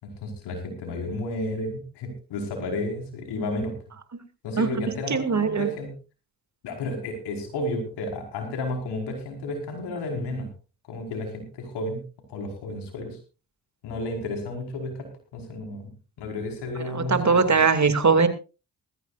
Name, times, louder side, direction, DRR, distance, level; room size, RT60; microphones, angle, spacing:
voice 1, 0.0-3.7 4.4-5.9 6.6-10.5 10.9-12.0 12.3-13.2 13.8-15.9 16.2-17.6, left 2 dB, 85° left, 3 dB, 5.2 m, -32 dB
voice 2, 4.6-5.7 16.9-18.3, right 5 dB, 45° right, 9 dB, 2.6 m, -21 dB
19.5 x 15.0 x 2.6 m, 0.32 s
supercardioid pair, 50°, 39 cm